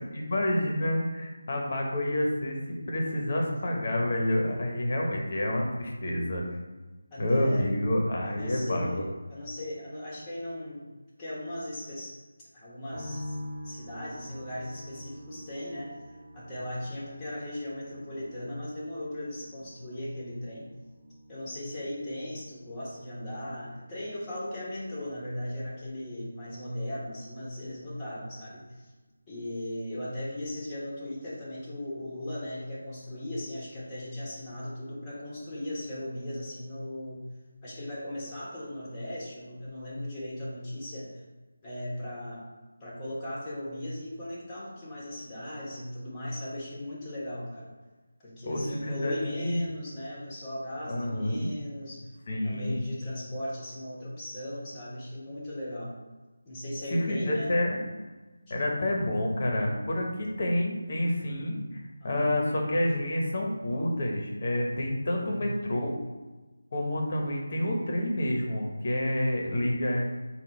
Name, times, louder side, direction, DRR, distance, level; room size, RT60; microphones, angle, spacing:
voice 1, 0.0-6.4 7.2-9.0 48.5-49.6 50.8-51.5 52.3-52.8 56.9-57.9 58.5-61.8 62.0-65.9 66.7-70.1, left 1 dB, 45° left, 0 dB, 0.9 m, -28 dB
voice 2, 7.1-7.7 8.2-10.8 11.2-12.2 12.5-13.4 13.6-20.7 21.3-28.9 29.3-37.2 37.6-41.2 41.6-42.4 42.8-47.7 48.2-52.1 52.4-55.9 56.4-57.5 58.6-58.8 61.3-62.6 65.2-65.4, left 1 dB, 15° left, -8 dB, 1.3 m, -38 dB
sound 1, 12.9-28.2 28.4-29.3, left 1 dB, 45° right, 1.0 m, -48 dB
3.7 x 2.3 x 4.4 m, 1.2 s
figure-of-eight pair, 165°, 0 cm